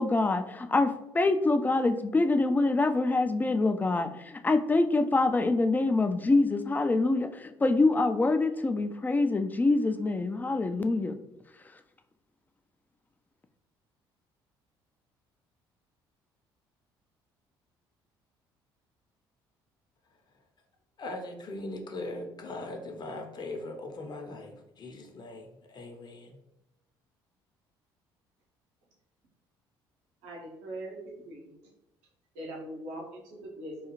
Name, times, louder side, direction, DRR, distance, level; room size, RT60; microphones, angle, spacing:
voice 1, 0.0-11.2, left 2 dB, 15° left, 8 dB, 0.3 m, -25 dB
voice 2, 21.0-26.4, left 2 dB, 40° left, 3 dB, 0.7 m, -40 dB
voice 3, 30.2-31.5 32.3-33.9, right 1 dB, 70° right, -3 dB, 1.0 m, -41 dB
3.8 x 2.3 x 3.0 m, 0.86 s
hypercardioid pair, 55°, 12 cm